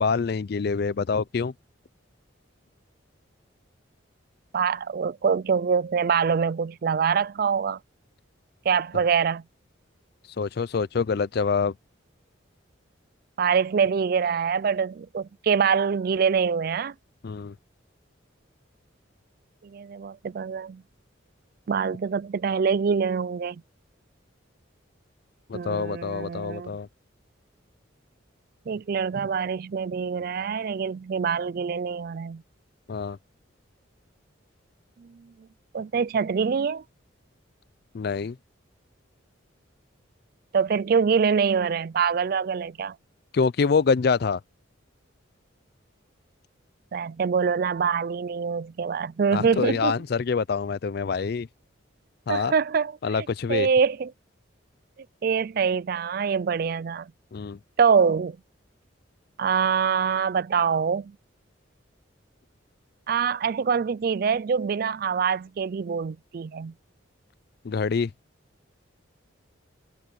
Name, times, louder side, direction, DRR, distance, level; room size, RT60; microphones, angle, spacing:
voice 1, 0.0-1.5 10.4-11.7 17.2-17.5 25.5-26.9 32.9-33.2 37.9-38.4 43.3-44.4 49.3-51.5 52.3-52.5 53.0-53.7 57.3-57.6 67.6-68.1, left 5 dB, 50° left, 0.4 m, -25 dB
voice 2, 4.5-7.8 8.7-9.4 13.4-16.9 19.6-20.8 21.7-23.6 25.5-26.7 28.7-32.4 35.0-35.1 35.7-36.8 40.5-42.9 46.9-49.9 52.3-54.1 55.2-57.1 57.8-58.4 59.4-61.1 63.1-66.7, right 6 dB, 50° right, 0.3 m, -25 dB
head